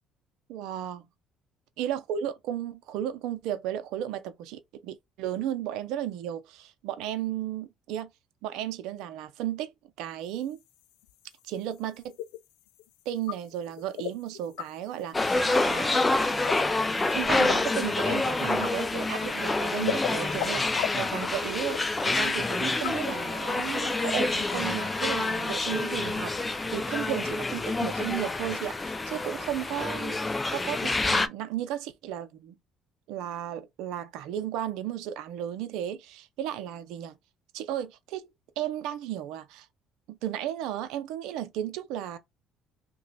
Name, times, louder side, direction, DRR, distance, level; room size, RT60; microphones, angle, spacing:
voice 1, 0.5-1.0 1.8-8.1 8.4-9.7 10.0-10.6 11.4-12.2 13.1-16.1 17.1-32.5 33.1-37.1 37.5-38.3 38.6-39.7 40.1-42.2, right 11 dB, 80° right, 0.5 m, -34 dB
sound 1, 10.2-24.5, left 13 dB, 85° left, 0.3 m, -40 dB
sound 2, 15.1-31.3, left 2 dB, 20° left, 0.5 m, -27 dB
2.9 x 2.3 x 4.0 m
supercardioid pair, 75°, 0 cm